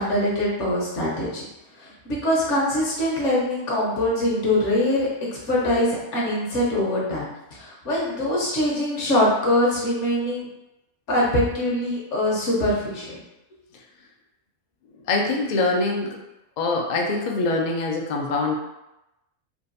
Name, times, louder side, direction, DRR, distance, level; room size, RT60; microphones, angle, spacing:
voice 1, 0.0-1.4 1.8-10.5 11.1-13.2, left 1 dB, 65° left, -4 dB, 1.3 m, -23 dB
voice 2, 15.1-16.2 16.6-18.5, left 3 dB, 85° left, 0 dB, 0.3 m, -24 dB
3.7 x 2.3 x 2.6 m, 0.92 s
omnidirectional pair, 1.4 m